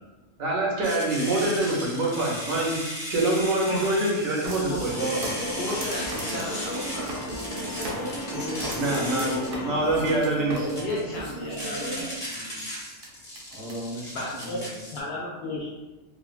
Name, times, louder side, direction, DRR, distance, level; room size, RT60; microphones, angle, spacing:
voice 1, 0.4-2.8 3.1-5.2 8.7-9.3 9.6-10.5, right 2 dB, 85° right, -3 dB, 1.2 m, -25 dB
sound 1, 0.8-15.0, equal, 25° left, 0.8 m, -36 dB
sound 2, 4.4-12.4 13.0-13.1 13.3-13.7 14.4-14.5, right 1 dB, 55° right, 0.7 m, -36 dB
sound 3, 4.8-10.2, left 1 dB, 85° left, 1.0 m, -36 dB
voice 2, 5.5-7.2 10.8-12.1 14.1-14.6 14.9-15.7, left 2 dB, 65° left, -4 dB, 0.7 m, -33 dB
voice 3, 8.3-9.8 10.4-11.9 12.2-12.6 13.5-14.7, right 1 dB, 20° right, -7 dB, 0.7 m, -36 dB
3.2 x 2.3 x 2.4 m, 1.1 s
omnidirectional pair, 1.4 m